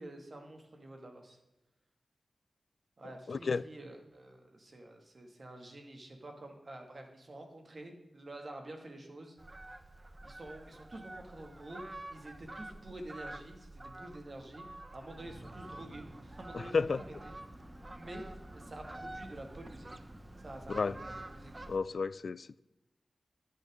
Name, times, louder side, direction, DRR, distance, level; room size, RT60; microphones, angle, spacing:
voice 1, 0.0-1.4 3.0-9.4 10.2-11.8 12.1-14.7 14.9-17.3 17.9-18.3 18.5-20.0 20.4-21.5, right 1 dB, 55° right, 2.2 m, -48 dB
voice 2, 3.3-3.6 16.7-17.0 20.7-20.9 21.7-22.6, left 4 dB, 75° left, 0.3 m, -31 dB
Fowl, 9.4-21.8, right 2 dB, 35° right, 0.8 m, -49 dB
sound 1, 15.2-21.8, right 1 dB, 20° right, 2.1 m, -52 dB
11.5 x 9.5 x 3.7 m
cardioid pair, 55°, 0 cm